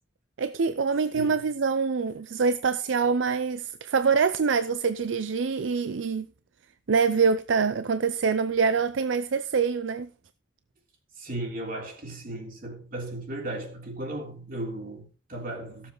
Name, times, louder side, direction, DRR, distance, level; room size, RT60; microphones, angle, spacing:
voice 1, 0.4-6.3 6.9-10.1, right 5 dB, 85° right, 0.5 m, -25 dB
voice 2, 1.1-1.4 11.2-15.9, right 1 dB, 50° right, 3.3 m, -36 dB
16.5 x 7.3 x 3.8 m
head